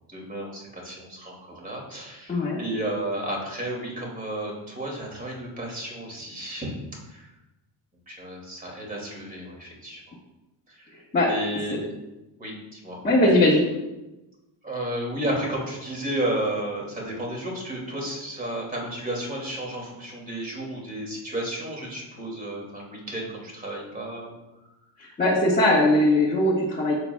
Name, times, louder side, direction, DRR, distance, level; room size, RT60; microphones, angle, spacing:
voice 1, 0.1-6.7 7.1-7.3 8.1-10.0 10.7-10.9 11.2-11.9 12.4-13.0 14.6-24.3, right 1 dB, 15° right, -2 dB, 2.5 m, -32 dB
voice 2, 2.3-2.6 11.1-11.3 13.0-13.6 25.2-26.9, left 1 dB, 20° left, -7 dB, 1.4 m, -19 dB
11.0 x 7.9 x 2.3 m, 1.0 s
cardioid pair, 150°, 47 cm